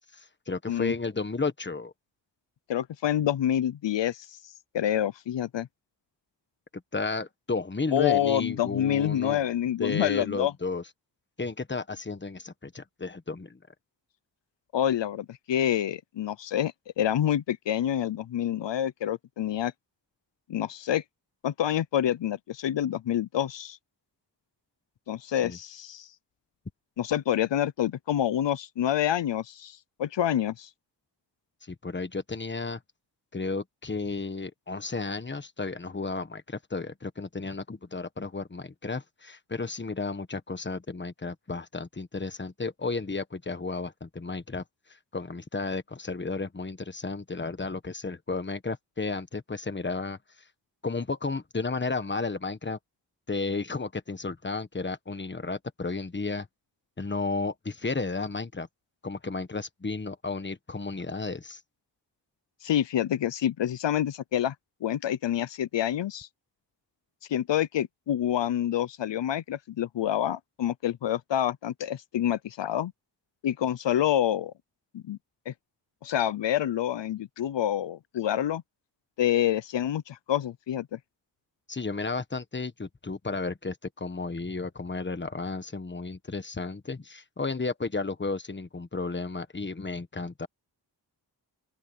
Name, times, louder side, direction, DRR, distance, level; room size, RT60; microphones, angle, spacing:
voice 1, 0.1-1.9 6.9-9.5 9.8-10.8 11.4-13.6 25.4-25.6 31.7-32.8 33.3-44.6 45.1-50.2 50.8-52.8 53.3-56.5 57.0-58.7 59.0-61.6 81.7-90.5, left 3 dB, 25° left, 1.4 m, -33 dB
voice 2, 2.7-4.4 4.7-5.7 7.9-10.5 14.7-19.7 20.5-21.0 21.4-23.8 25.1-26.1 27.0-30.7 62.6-64.5 64.8-66.3 67.3-72.9 73.4-74.5 74.9-75.2 75.5-75.6 76.0-78.6 79.2-81.0, left 11 dB, 85° left, 0.7 m, -27 dB
open air
wide cardioid pair, 105°, 42 cm